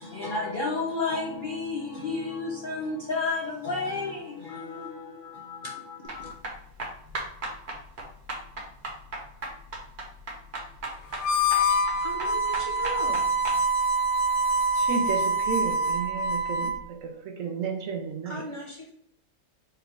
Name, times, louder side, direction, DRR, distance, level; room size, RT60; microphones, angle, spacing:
voice 1, 0.0-6.3, left 3 dB, 50° left, 0.6 m, -32 dB
sound 1, 6.1-13.6, right 2 dB, 45° right, 1.3 m, -37 dB
Harmonica, 11.1-16.8, right 1 dB, 90° left, 1.2 m, -25 dB
voice 2, 12.0-13.2 18.3-18.9, equal, 25° left, 0.9 m, -37 dB
voice 3, 14.7-18.5, right 5 dB, 70° right, 0.9 m, -32 dB
4.7 x 2.4 x 4.5 m
omnidirectional pair, 1.6 m